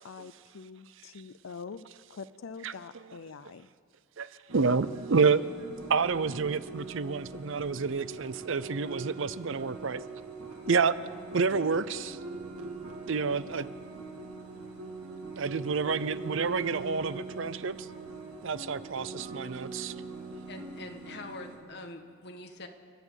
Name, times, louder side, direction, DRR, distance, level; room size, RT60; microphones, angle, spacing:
voice 1, 0.0-3.7, left 5 dB, 70° left, 14 dB, 0.5 m, -45 dB
voice 2, 4.5-5.4 5.9-10.0 10.7-10.9 11.3-12.2 13.1-13.7 15.4-17.9 18.4-19.9, right 5 dB, 60° right, 15 dB, 0.6 m, -28 dB
sound 1, 4.5-21.6, right 3 dB, 85° right, 2.7 m, -42 dB
voice 3, 20.5-22.7, left 2 dB, 50° left, 4 dB, 1.7 m, -44 dB
29.5 x 11.0 x 8.1 m, 2.1 s
head